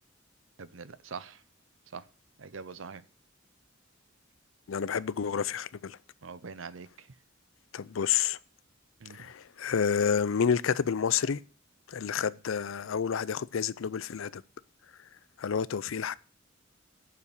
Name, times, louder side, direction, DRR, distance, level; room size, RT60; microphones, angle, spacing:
voice 1, 0.6-1.4 1.9-2.0 2.4-3.0 6.2-7.1 9.0-9.3, right 5 dB, 75° right, 0.7 m, -43 dB
voice 2, 4.7-6.0 7.7-8.4 9.1-11.4 11.9-14.4 15.4-16.2, left 7 dB, 80° left, 0.5 m, -29 dB
8.6 x 6.9 x 8.1 m
head